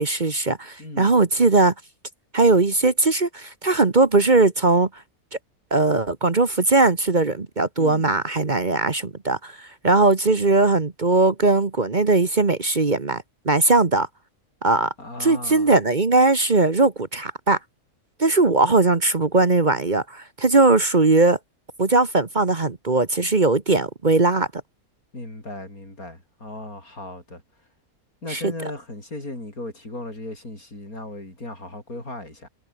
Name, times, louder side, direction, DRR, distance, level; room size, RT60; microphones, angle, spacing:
voice 1, 0.0-1.7 2.3-5.0 5.7-14.1 14.6-14.9 15.2-17.6 18.2-21.4 21.8-24.5 28.3-28.5, right 3 dB, 35° right, 1.5 m, -19 dB
voice 2, 0.8-1.2 7.8-8.1 15.0-15.7 25.1-27.4 28.2-32.5, left 2 dB, 80° left, 8.3 m, -36 dB
omnidirectional pair, 1.5 m